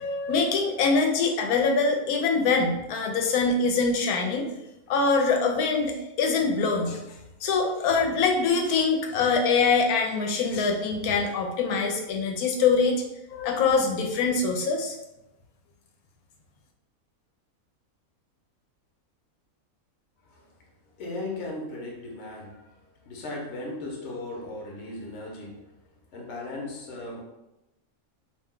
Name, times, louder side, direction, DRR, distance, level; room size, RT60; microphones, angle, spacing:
voice 1, 0.0-4.4 4.9-7.0 7.4-13.0 13.3-15.0, left 4 dB, 90° left, 2 dB, 1.1 m, -24 dB
voice 2, 21.0-25.7 26.1-27.2, left 2 dB, 60° left, -1 dB, 0.9 m, -37 dB
2.7 x 2.2 x 3.6 m, 0.93 s
omnidirectional pair, 1.5 m